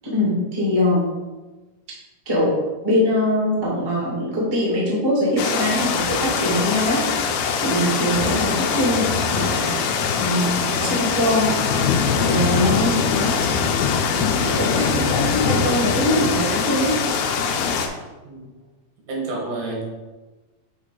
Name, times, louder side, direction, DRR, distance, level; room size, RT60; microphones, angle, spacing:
voice 1, 0.1-1.0 2.2-2.6 2.8-7.3 7.6-9.9 10.2-10.5 10.7-11.5 12.2-13.3 14.4-16.9, left 1 dB, 30° right, -6 dB, 0.4 m, -22 dB
sound 1, 5.4-17.9, left 6 dB, 80° left, 2.3 m, -22 dB
voice 2, 19.0-19.8, right 2 dB, 70° right, -2 dB, 3.0 m, -29 dB
8.0 x 3.6 x 3.9 m, 1.2 s
omnidirectional pair, 4.6 m